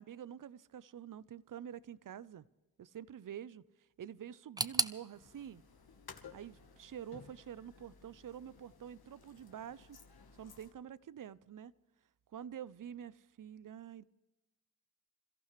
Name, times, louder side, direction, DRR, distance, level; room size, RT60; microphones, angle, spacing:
voice 1, 0.0-2.4 2.8-3.6 4.0-5.6 6.3-10.0 10.3-11.7 12.3-14.0, right 9 dB, 60° right, 20 dB, 0.6 m, -47 dB
sound 1, 4.6-7.4 7.7-8.5 8.8-8.9 9.7-9.8, right 2 dB, 10° right, 0.6 m, -40 dB
sound 2, 5.1-10.7, left 5 dB, 90° left, 1.5 m, -57 dB
27.5 x 14.5 x 3.2 m, 1.1 s
cardioid pair, 60°, 36 cm